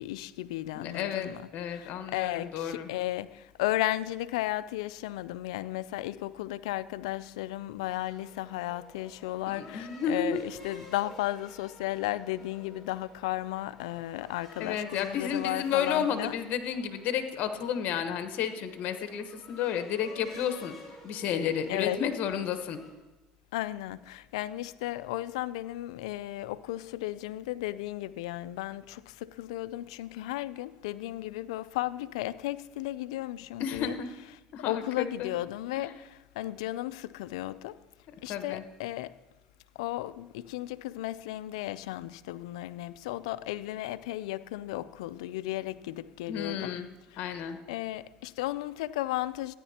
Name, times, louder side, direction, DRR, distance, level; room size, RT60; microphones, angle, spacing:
voice 1, 0.0-1.4 1.7-16.4 21.7-22.0 23.5-34.0 34.6-37.8 38.2-39.1 39.8-46.8 47.1-47.2 47.7-49.5, left 15 dB, 90° left, 0.4 m, -34 dB
voice 2, 0.7-2.9 9.5-10.5 14.6-20.7 21.0-22.8 33.6-34.1 34.5-35.3 35.8-35.9 38.3-38.6 46.3-46.9 47.2-47.6, left 8 dB, 60° left, 1.2 m, -32 dB
sound 1, 8.1-22.9, left 1 dB, 5° left, 3.9 m, -51 dB
14.0 x 10.0 x 2.9 m
supercardioid pair, 95°, 3 cm